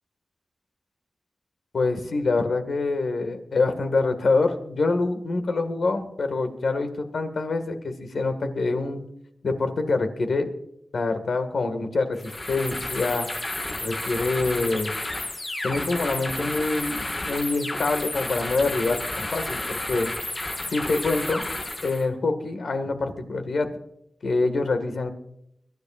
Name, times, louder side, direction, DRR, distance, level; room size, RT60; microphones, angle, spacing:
voice 1, 1.7-9.0 9.4-10.5 10.9-13.3 13.8-14.9 15.6-20.1 20.7-21.4 21.8-23.7 24.2-25.1, left 3 dB, 80° left, 7 dB, 1.9 m, -25 dB
sound 1, 12.1-22.1, left 2 dB, 45° left, 5.2 m, -31 dB
24.0 x 13.0 x 2.5 m, 0.77 s
wide cardioid pair, 70°, 0 cm